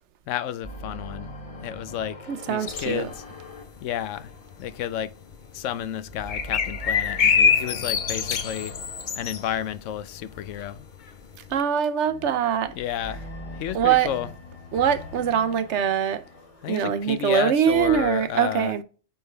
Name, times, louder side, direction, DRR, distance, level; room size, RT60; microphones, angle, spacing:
voice 1, 0.3-1.3 1.6-3.2 3.8-4.3 4.6-5.1 5.5-8.8 9.1-10.8 12.7-14.3 16.6-18.7, left 10 dB, 85° left, 0.9 m, -31 dB
sound 1, 0.6-5.6 5.9-11.3 12.0-18.0, left 1 dB, 30° left, 0.9 m, -42 dB
voice 2, 2.3-3.1 11.5-12.7 13.7-14.1 14.7-16.2 16.7-18.8, right 8 dB, 70° right, 0.9 m, -23 dB
sound 2, 2.7-3.9 4.2-4.7 5.0-5.1 5.3-5.7 6.3-10.7 10.9-11.0 11.3-11.5, left 6 dB, 50° left, 0.6 m, -24 dB
8.6 x 3.5 x 3.3 m
omnidirectional pair, 1.3 m